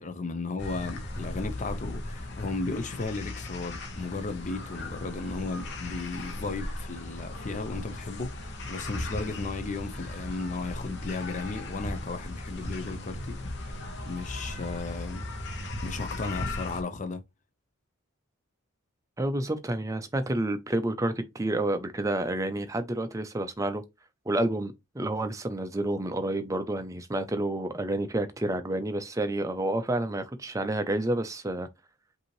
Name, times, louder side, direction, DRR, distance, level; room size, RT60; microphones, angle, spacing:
voice 1, 0.0-15.2 15.8-17.2, left 3 dB, 35° left, 0.5 m, -35 dB
sound 1, 0.6-16.8, left 1 dB, 50° left, 1.0 m, -37 dB
voice 2, 19.2-23.8 24.3-31.7, right 1 dB, 15° right, 0.5 m, -29 dB
5.4 x 2.7 x 3.0 m
head